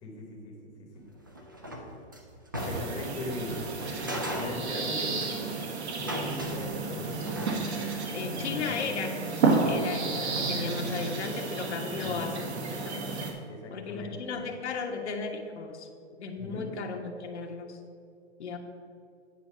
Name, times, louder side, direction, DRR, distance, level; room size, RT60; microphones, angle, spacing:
voice 1, 0.0-0.5 0.8-1.0 2.5-3.6 4.0-5.5 5.9-7.3 8.5-8.8 9.6-9.9 12.0-12.3 13.4-14.3 16.4-16.7, left 2 dB, 10° left, -3 dB, 0.9 m, -39 dB
sound 1, 1.1-3.1 3.5-5.6 5.9-8.1, equal, 20° right, 0.3 m, -38 dB
sound 2, 2.6-13.3, right 4 dB, 70° right, 1.6 m, -31 dB
voice 2, 8.1-9.1 9.6-12.4 12.8-13.0 13.7-17.8 18.4-18.6, left 5 dB, 75° left, 2 dB, 1.3 m, -35 dB
9.2 x 4.1 x 6.7 m, 2.3 s
hypercardioid pair, 175°, 34 cm